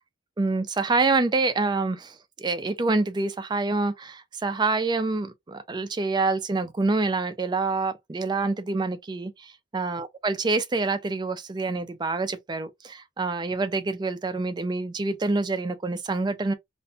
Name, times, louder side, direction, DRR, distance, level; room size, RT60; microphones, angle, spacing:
voice 1, 0.4-16.5, right 3 dB, 25° right, 0.4 m, -26 dB
2.5 x 2.1 x 2.7 m
head